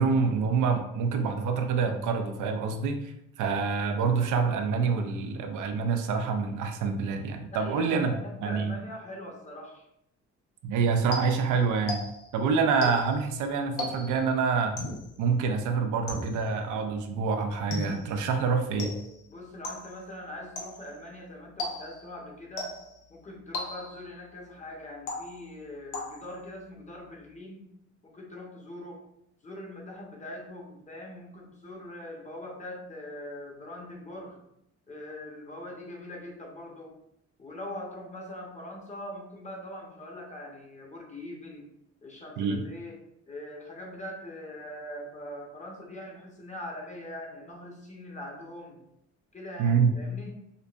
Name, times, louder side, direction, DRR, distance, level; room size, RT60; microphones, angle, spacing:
voice 1, 0.0-8.1 8.4-8.7 10.6-12.0 12.3-14.8 15.2-19.0 42.4-42.6 49.6-50.0, right 5 dB, 80° right, 5 dB, 0.5 m, -26 dB
voice 2, 7.5-9.9 19.3-22.8 23.1-27.7 28.0-29.0 29.4-34.4 34.9-36.9 37.4-41.7 42.0-43.0 43.3-48.8 49.3-50.4, left 1 dB, 25° left, 0 dB, 1.0 m, -42 dB
sound 1, 11.1-12.4 12.8-13.2 13.8-14.3 14.8-15.2 16.1-16.6 17.7-18.2 18.8-19.2 19.6-20.0 20.6-21.0 21.6-22.1 22.6-23.0 23.5-24.1 25.1-25.6 25.9-26.4, left 2 dB, 85° left, 0.9 m, -37 dB
5.1 x 2.1 x 2.5 m, 0.79 s
cardioid pair, 90°, 30 cm